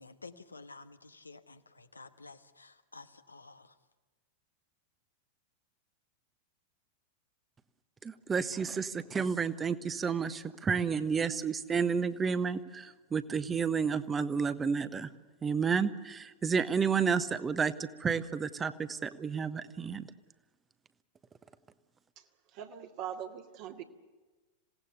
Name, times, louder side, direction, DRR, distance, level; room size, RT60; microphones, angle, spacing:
voice 1, 0.0-3.7, left 3 dB, 80° left, 9 dB, 1.3 m, -51 dB
voice 2, 8.0-15.1 15.4-20.1, right 6 dB, 20° right, 13 dB, 1.2 m, -31 dB
voice 3, 22.5-23.8, right 9 dB, 45° right, 3 dB, 2.1 m, -41 dB
27.0 x 18.0 x 6.9 m, 1.2 s
figure-of-eight pair, 90°, 0 cm